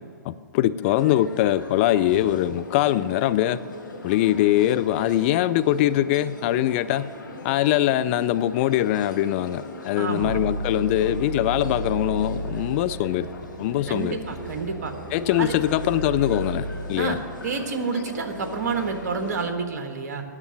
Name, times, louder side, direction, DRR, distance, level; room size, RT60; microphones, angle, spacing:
voice 1, 0.2-3.6 4.0-7.1 7.4-13.3 13.6-14.2 15.1-17.2, left 13 dB, 40° left, 14 dB, 0.4 m, -22 dB
sound 1, 0.8-19.5, left 2 dB, 80° left, 1.6 m, -39 dB
voice 2, 10.0-10.4 13.9-14.9 15.4-15.5 17.0-17.2 17.4-20.2, right 4 dB, 60° right, 5 dB, 1.5 m, -29 dB
sound 2, 10.2-19.8, right 2 dB, 40° right, 3.6 m, -35 dB
9.7 x 6.7 x 9.0 m, 2.2 s
hypercardioid pair, 120°, 10 cm